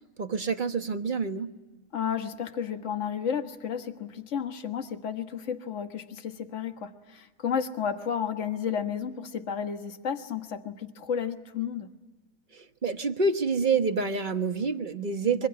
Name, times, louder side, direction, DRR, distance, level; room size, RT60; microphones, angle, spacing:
voice 1, 0.2-1.5 12.5-15.5, right 4 dB, 35° right, 6 dB, 1.2 m, -27 dB
voice 2, 1.9-11.9 15.2-15.5, left 7 dB, 50° left, 6 dB, 1.7 m, -32 dB
23.5 x 22.0 x 9.6 m, 1.3 s
omnidirectional pair, 1.7 m